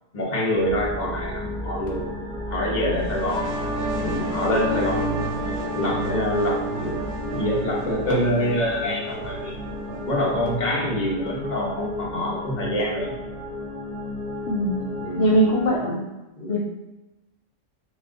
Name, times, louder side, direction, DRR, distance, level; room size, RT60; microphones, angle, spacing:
voice 1, 0.1-2.2 2.5-3.5 4.0-5.2 5.7-7.0 7.3-9.6 10.0-13.1 15.0-15.3 15.8-16.0 16.4-16.6, equal, 35° left, -3 dB, 1.0 m, -26 dB
sound 1, 0.5-15.8, left 1 dB, 5° left, 0.4 m, -33 dB
sound 2, 3.0-10.3, right 1 dB, 85° right, 0.3 m, -31 dB
voice 2, 14.5-14.8 15.2-16.0 16.4-16.6, equal, 65° left, -2 dB, 0.8 m, -21 dB
4.3 x 2.3 x 3.7 m, 1.0 s
omnidirectional pair, 1.4 m